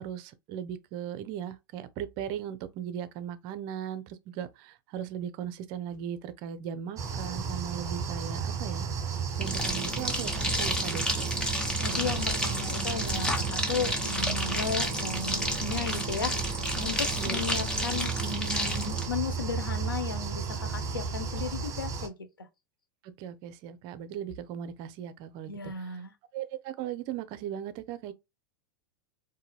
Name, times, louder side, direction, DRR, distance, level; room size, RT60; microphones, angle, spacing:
voice 1, 0.0-8.9 9.4-11.1 17.2-17.4 23.0-25.7 26.3-28.1, right 9 dB, 45° right, 0.5 m, -38 dB
sound 1, 7.0-22.1, right 5 dB, 30° right, 1.3 m, -34 dB
sound 2, 9.4-19.1, equal, 5° left, 1.1 m, -31 dB
voice 2, 11.5-22.5 25.5-26.1, left 5 dB, 80° left, 0.7 m, -35 dB
3.9 x 2.6 x 2.3 m
figure-of-eight pair, 95°, 11 cm